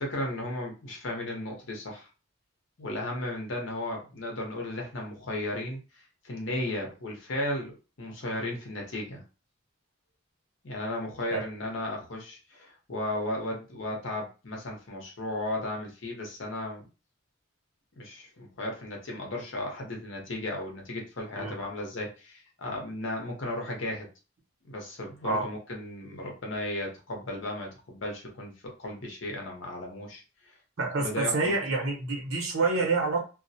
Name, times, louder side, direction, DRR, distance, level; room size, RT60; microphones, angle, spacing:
voice 1, 0.0-2.1 2.8-9.2 10.6-16.9 18.0-24.1 24.6-30.5 30.9-31.5, left 1 dB, 60° left, 0 dB, 0.8 m, -35 dB
voice 2, 30.8-33.2, right 3 dB, 80° right, 1 dB, 0.9 m, -27 dB
2.3 x 2.1 x 2.7 m, 0.32 s
head